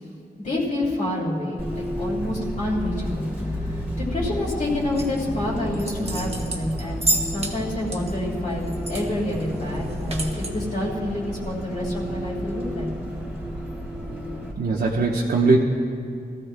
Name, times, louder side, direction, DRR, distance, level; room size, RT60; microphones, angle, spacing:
voice 1, 0.4-3.3 3.5-12.9, left 1 dB, 50° left, -7 dB, 2.9 m, -28 dB
Bus, 1.6-14.5, equal, 5° right, 2.6 m, -31 dB
sound 1, 4.9-5.2 5.7-7.5 7.9-9.1 9.3-9.4 9.7-10.5, right 2 dB, 35° right, 1.2 m, -29 dB
voice 2, 14.6-15.6, right 3 dB, 70° right, -3 dB, 1.0 m, -20 dB
21.5 x 14.5 x 2.2 m, 2.3 s
wide cardioid pair, 155°, 17 cm